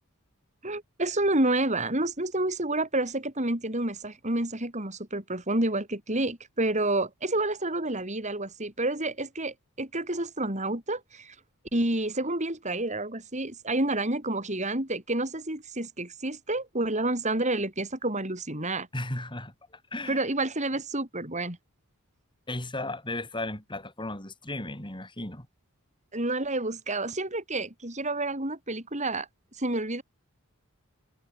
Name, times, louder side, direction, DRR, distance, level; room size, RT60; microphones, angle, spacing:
voice 1, 0.6-11.4 11.7-18.9 20.1-21.6 26.1-29.3 29.6-30.0, right 2 dB, 30° right, 5.4 m, -29 dB
voice 2, 18.9-19.5 19.9-20.2 22.5-25.5, left 2 dB, 20° left, 6.7 m, -35 dB
head